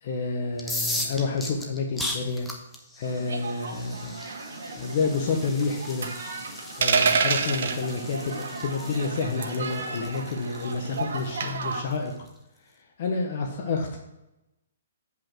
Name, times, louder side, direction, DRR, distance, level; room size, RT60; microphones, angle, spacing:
voice 1, 0.0-2.5 3.0-4.1 4.8-6.1 6.8-12.1 13.0-14.0, left 4 dB, 40° left, 3 dB, 0.8 m, -29 dB
sound 1, 0.5-12.3, left 1 dB, 5° left, 0.6 m, -38 dB
sound 2, 3.0-11.8, right 3 dB, 80° right, 1.8 m, -37 dB
sound 3, 6.8-7.8 9.4-9.7 11.4-11.7, right 5 dB, 55° right, 0.8 m, -23 dB
8.2 x 5.3 x 4.4 m, 0.94 s
hypercardioid pair, 175°, 0 cm